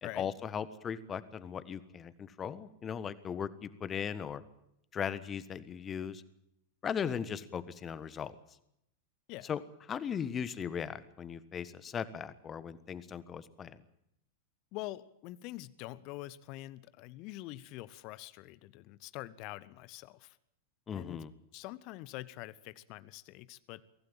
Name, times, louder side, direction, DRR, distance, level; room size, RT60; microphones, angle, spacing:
voice 1, 0.0-4.4 4.9-6.2 6.8-8.3 9.4-9.6 9.9-13.8 20.9-21.3, left 7 dB, 25° left, 16 dB, 1.4 m, -38 dB
voice 2, 14.7-20.4 20.9-21.2 21.5-23.8, left 17 dB, 40° left, 18 dB, 1.1 m, -45 dB
23.5 x 16.5 x 9.0 m, 0.78 s
figure-of-eight pair, 90°, 0 cm